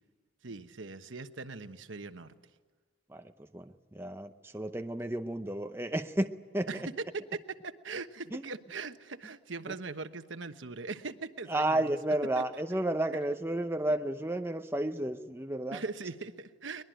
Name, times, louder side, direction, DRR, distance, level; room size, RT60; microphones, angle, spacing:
voice 1, 0.4-2.3 6.7-11.9 12.3-12.6 15.7-16.8, right 4 dB, 75° right, 9 dB, 1.1 m, -40 dB
voice 2, 3.1-6.9 8.3-8.4 11.5-15.8, right 1 dB, 10° right, 7 dB, 0.7 m, -32 dB
23.0 x 21.0 x 9.1 m, 1.5 s
head